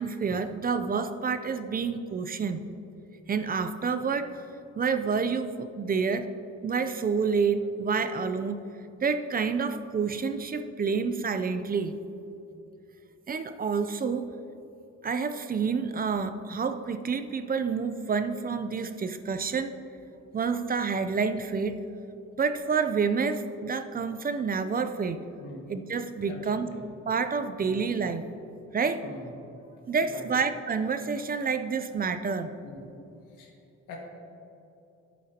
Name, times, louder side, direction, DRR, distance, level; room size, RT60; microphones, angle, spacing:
voice 1, 0.0-2.7 3.3-4.4 4.8-6.3 6.6-8.6 9.0-12.0 13.3-14.3 15.0-19.7 20.3-21.8 22.4-25.2 25.7-26.7 27.1-28.2 28.7-29.0 29.9-32.5, right 5 dB, 30° right, 9 dB, 0.5 m, -28 dB
voice 2, 26.3-26.8 27.6-27.8 29.0-30.3 32.6-32.9 33.3-33.5 33.9-34.0, left 2 dB, 85° left, 0 dB, 1.8 m, -44 dB
11.5 x 8.4 x 2.9 m, 2.9 s
cardioid pair, 90°, 30 cm